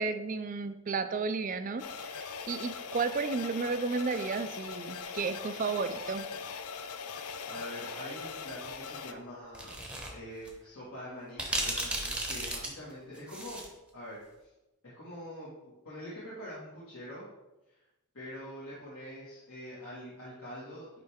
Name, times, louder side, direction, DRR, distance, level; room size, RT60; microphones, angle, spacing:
voice 1, 0.0-6.3, right 4 dB, 35° right, 10 dB, 0.4 m, -33 dB
sound 1, 1.8-9.1, left 5 dB, 80° left, 0.5 m, -41 dB
voice 2, 7.4-13.6 13.9-14.5 14.8-15.5 15.8-17.3 18.1-21.0, equal, 65° left, -9 dB, 1.8 m, -44 dB
sound 2, 9.5-10.1 10.4-10.5 11.4-13.7, right 1 dB, 5° right, 0.8 m, -34 dB
9.6 x 3.3 x 3.6 m, 0.98 s
head